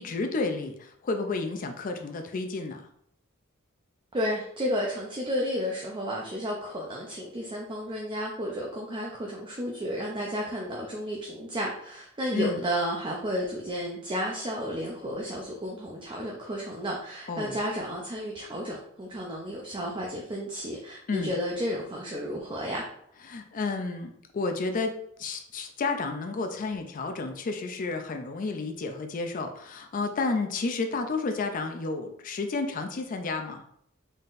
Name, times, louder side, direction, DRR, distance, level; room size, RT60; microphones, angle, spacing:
voice 1, 0.0-2.8 12.3-12.6 17.3-17.6 21.1-21.4 23.3-33.6, left 3 dB, 40° left, 5 dB, 0.4 m, -31 dB
voice 2, 4.1-22.9, equal, 25° right, -1 dB, 0.5 m, -32 dB
4.1 x 3.7 x 2.5 m, 0.70 s
head